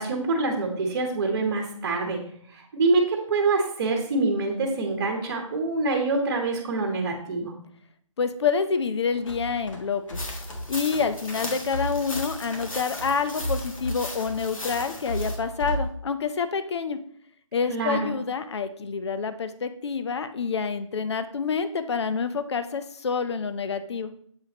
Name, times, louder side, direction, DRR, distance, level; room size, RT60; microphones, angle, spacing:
voice 1, 0.0-2.2 2.5-7.5 17.7-18.1, right 3 dB, 35° right, 2 dB, 1.0 m, -25 dB
voice 2, 8.2-10.2 10.7-17.0 17.5-24.1, left 5 dB, 55° left, 11 dB, 0.6 m, -27 dB
sound 1, 9.1-15.9, equal, 70° left, 1.6 m, -34 dB
sound 2, 10.1-15.4, left 2 dB, 85° left, 1.6 m, -38 dB
7.4 x 4.7 x 2.9 m, 0.62 s
figure-of-eight pair, 155°, 17 cm